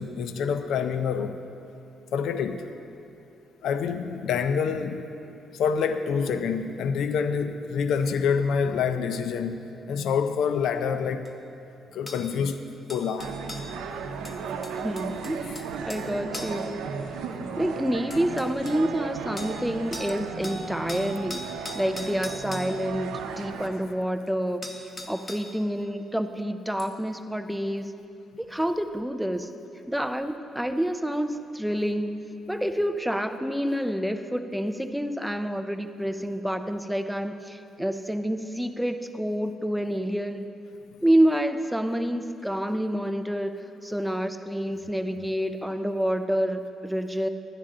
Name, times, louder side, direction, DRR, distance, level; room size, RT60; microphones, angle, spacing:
voice 1, 0.0-1.4 2.1-2.6 3.6-5.1 5.5-9.6 9.9-11.3 11.9-12.6 12.9-13.3, left 6 dB, 75° left, 9 dB, 0.5 m, -26 dB
sound 1, 11.2-11.3 12.1-12.2 12.9-13.7 14.2-16.1 16.3-16.7 17.6-17.7 18.1-18.8 19.4-19.6 19.9-20.1 20.4-22.7 24.3-24.4 24.6-25.5 26.8-26.9, left 2 dB, 25° left, 1.0 m, -40 dB
sound 2, 13.2-23.7, right 6 dB, 85° right, 0.7 m, -35 dB
voice 2, 14.8-16.8 17.6-21.4 21.7-24.7 25.1-27.9 28.4-29.5 29.9-40.4 41.0-47.3, equal, 5° right, 8 dB, 0.5 m, -28 dB
11.5 x 11.0 x 3.8 m, 2.7 s
cardioid pair, 90°, 0 cm